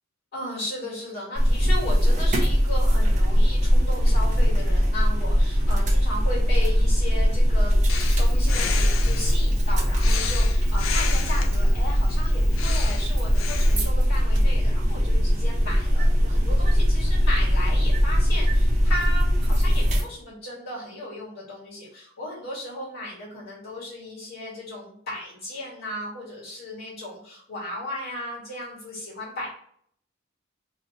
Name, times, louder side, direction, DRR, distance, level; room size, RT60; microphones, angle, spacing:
voice 1, 0.3-29.5, left 1 dB, 55° left, -8 dB, 1.5 m, -36 dB
sound 1, 1.4-20.0, equal, 35° right, 0.7 m, -21 dB
Breathing, 7.9-13.9, left 4 dB, 80° left, 0.5 m, -32 dB
3.0 x 2.8 x 2.8 m, 0.63 s
head